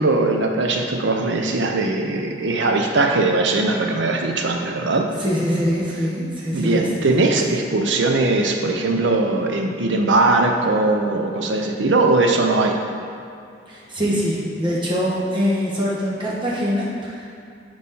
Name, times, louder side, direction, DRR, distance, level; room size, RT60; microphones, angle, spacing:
voice 1, 0.0-5.1 6.5-12.8, right 2 dB, 65° right, 3 dB, 0.6 m, -20 dB
voice 2, 5.2-7.4 13.7-17.3, equal, 25° right, -6 dB, 1.2 m, -23 dB
4.8 x 4.3 x 5.5 m, 2.5 s
head